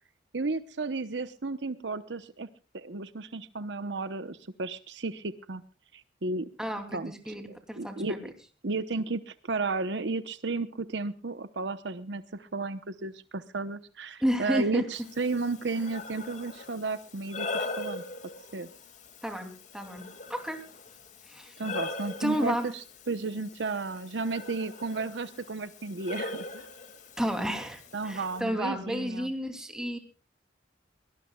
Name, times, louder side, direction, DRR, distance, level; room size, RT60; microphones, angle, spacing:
voice 1, 0.3-2.5 2.7-5.6 5.9-6.5 6.9-7.1 7.5-8.2 8.6-18.0 18.5-18.7 21.6-22.7 23.1-26.7 27.9-29.3, right 3 dB, 70° right, 11 dB, 0.9 m, -33 dB
voice 2, 6.6-8.3 14.2-14.9 19.2-20.6 21.2-21.6 22.2-22.7 27.2-30.0, equal, 5° right, 4 dB, 2.9 m, -32 dB
Breathing, 14.9-28.4, left 3 dB, 40° left, 2.3 m, -41 dB
22.5 x 19.0 x 2.3 m, 0.36 s
head